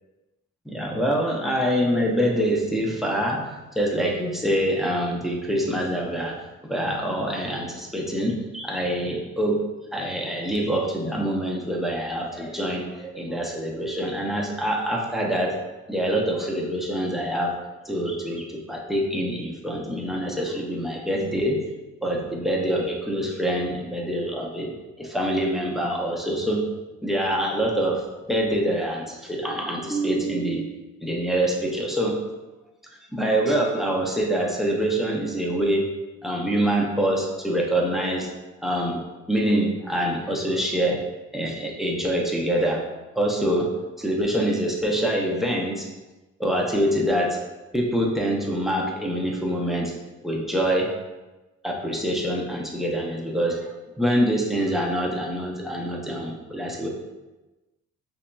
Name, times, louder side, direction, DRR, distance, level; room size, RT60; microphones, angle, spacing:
voice 1, 0.7-6.4 6.6-9.6 9.9-15.6 15.9-17.5 17.8-21.6 22.0-24.7 25.0-26.6 27.0-28.0 28.3-32.2 33.1-35.9 36.2-38.3 38.6-39.0 39.3-41.0 41.3-42.8 43.2-43.7 44.0-45.9 46.4-47.4 47.7-49.9 50.2-50.9 51.6-56.9, right 1 dB, ahead, -1 dB, 0.6 m, -25 dB
4.9 x 2.8 x 2.2 m, 1.1 s
cardioid pair, 90°, 30 cm